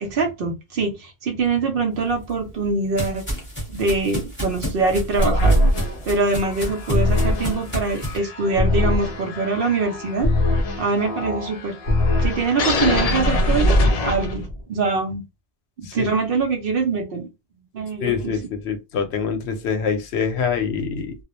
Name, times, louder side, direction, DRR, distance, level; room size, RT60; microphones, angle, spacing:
voice 1, 0.0-3.3 3.7-5.6 6.1-10.3 10.8-11.8 12.2-15.2 15.8-17.3 17.7-18.4, right 4 dB, 60° right, 0.8 m, -24 dB
sound 1, 2.1-8.2, equal, 10° left, 0.9 m, -31 dB
sound 2, 5.2-14.6, left 1 dB, 55° left, 0.4 m, -22 dB
voice 2, 18.0-21.2, left 6 dB, 75° left, 0.8 m, -25 dB
2.3 x 2.1 x 2.9 m
omnidirectional pair, 1.2 m